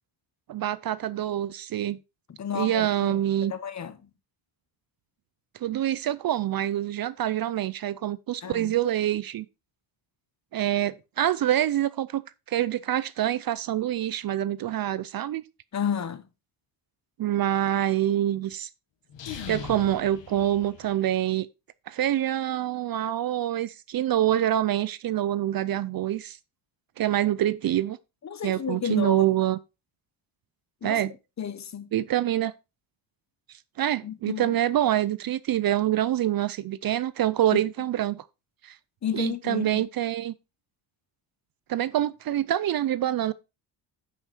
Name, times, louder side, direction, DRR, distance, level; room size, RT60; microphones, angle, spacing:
voice 1, 0.5-2.0 2.5-3.5 5.6-9.5 10.5-12.2 12.5-15.4 17.2-18.7 19.5-21.5 21.9-26.4 27.0-28.0 28.4-29.6 30.8-31.1 31.9-32.5 33.8-38.2 38.6-38.8 39.1-40.3 41.7-43.3, right 12 dB, 50° right, 0.5 m, -26 dB
voice 2, 2.4-3.2 3.5-4.0 8.4-8.7 15.7-16.2 28.2-29.2 30.8-31.0 31.4-31.9 34.0-34.5 39.0-39.8, left 8 dB, 35° left, 0.9 m, -32 dB
sound 1, 19.1-21.2, left 7 dB, 60° left, 1.7 m, -40 dB
9.1 x 5.7 x 4.4 m
cardioid pair, 130°, 49 cm